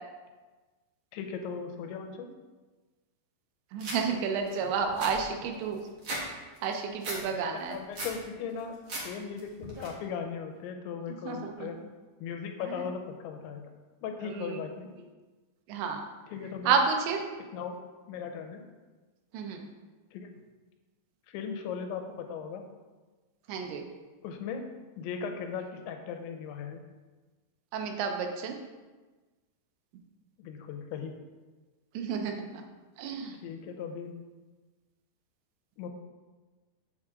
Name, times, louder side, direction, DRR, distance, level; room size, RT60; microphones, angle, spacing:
voice 1, 1.1-2.3 7.5-8.8 9.0-11.8 12.2-13.6 14.0-14.9 16.3-16.8 17.4-17.8 18.1-18.6 20.1-20.3 21.3-22.6 24.2-24.7 25.0-26.8 30.4-31.1 33.4-34.2 35.8-35.9, left 6 dB, 90° left, 5 dB, 3.1 m, -38 dB
voice 2, 3.7-5.8 6.6-7.8 11.3-11.7 14.3-14.6 15.7-16.0 16.7-17.2 19.3-19.7 23.5-23.8 27.7-28.6 31.9-32.6 33.0-33.4, right 5 dB, 85° right, 3 dB, 3.2 m, -30 dB
sound 1, 3.8-4.0 4.5-4.6 4.8-6.2 6.6-7.2 7.6-8.2 8.6-9.0 9.4-9.9, right 1 dB, 60° right, 1.3 m, -37 dB
7.5 x 7.2 x 3.7 m, 1.3 s
omnidirectional pair, 5.1 m